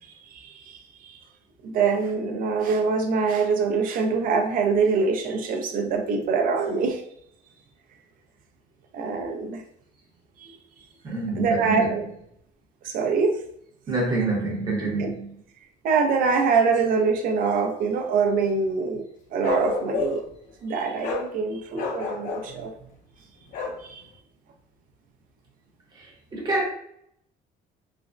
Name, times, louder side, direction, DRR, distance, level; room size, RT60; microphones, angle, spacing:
voice 1, 0.3-1.2 1.6-7.0 8.9-9.6 10.4-10.6 11.4-12.0 12.8-13.4 15.0-15.1 15.8-19.0 19.3-20.2 20.6-22.7 23.8-24.0, right 5 dB, 60° right, 4 dB, 0.5 m, -24 dB
voice 2, 11.0-11.9 13.9-15.3 26.0-26.7, right 2 dB, 25° right, -3 dB, 0.7 m, -27 dB
Bark, 19.4-20.3 21.0-21.3 21.7-22.5 23.5-23.8, left 4 dB, 50° left, 0.5 m, -29 dB
3.2 x 2.0 x 2.4 m, 0.71 s
cardioid pair, 175°, 17 cm